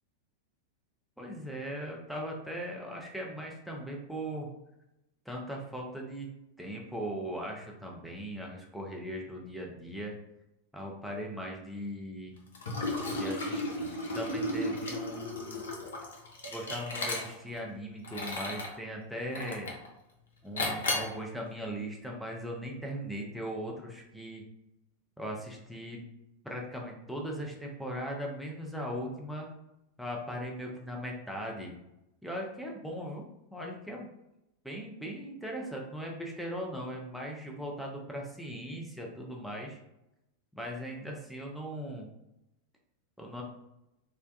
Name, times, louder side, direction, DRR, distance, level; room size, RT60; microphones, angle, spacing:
voice 1, 1.2-4.5 5.3-6.3 6.6-10.1 10.7-12.3 13.1-15.6 16.5-19.7 20.4-24.4 25.2-26.0 26.4-29.5 30.0-31.8 32.2-33.2 33.5-34.1 34.6-39.8 40.5-42.1 43.2-43.4, equal, ahead, -1 dB, 0.5 m, -39 dB
Liquid, 12.5-17.6 18.0-18.8 19.3-19.9 20.6-21.2, left 1 dB, 65° left, 0.5 m, -34 dB
2.3 x 2.1 x 2.6 m, 0.90 s
figure-of-eight pair, 90°, 0 cm